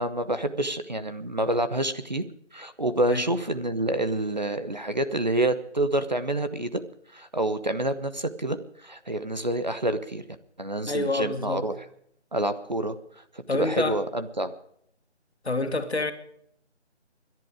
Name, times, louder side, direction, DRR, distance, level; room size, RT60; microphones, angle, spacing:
voice 1, 0.0-2.2 2.5-6.8 7.1-10.2 10.6-11.8 12.3-13.0 13.5-14.5, right 1 dB, 40° right, 0.8 m, -27 dB
voice 2, 10.9-11.6 13.5-14.0 15.4-16.1, left 2 dB, 65° left, 2.0 m, -27 dB
22.0 x 11.0 x 4.9 m
figure-of-eight pair, 170°, 35 cm